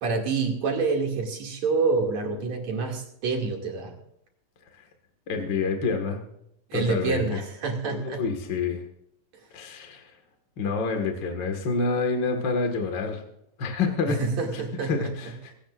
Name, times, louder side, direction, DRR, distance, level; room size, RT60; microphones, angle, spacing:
voice 1, 0.0-3.9 6.7-8.2 14.1-15.1 15.5-15.6, right 4 dB, 50° right, 1 dB, 3.4 m, -27 dB
voice 2, 5.3-6.2 6.7-7.4 7.9-8.8 9.5-10.0 10.6-13.2 13.6-14.2 14.9-15.5, left 4 dB, 40° left, 4 dB, 1.7 m, -27 dB
18.5 x 17.0 x 2.5 m, 0.74 s
omnidirectional pair, 4.3 m